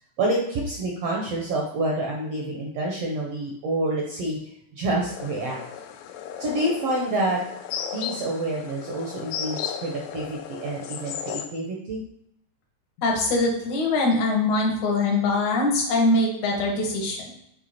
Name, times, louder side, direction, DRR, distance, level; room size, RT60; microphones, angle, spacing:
voice 1, 0.2-5.6 6.4-7.4 7.9-12.0, right 1 dB, 70° right, -2 dB, 1.5 m, -28 dB
sound 1, 5.0-11.5, left 8 dB, 80° left, 1.6 m, -35 dB
voice 2, 13.0-17.3, left 2 dB, 65° left, 0 dB, 2.6 m, -23 dB
8.3 x 3.3 x 4.2 m, 0.75 s
omnidirectional pair, 3.8 m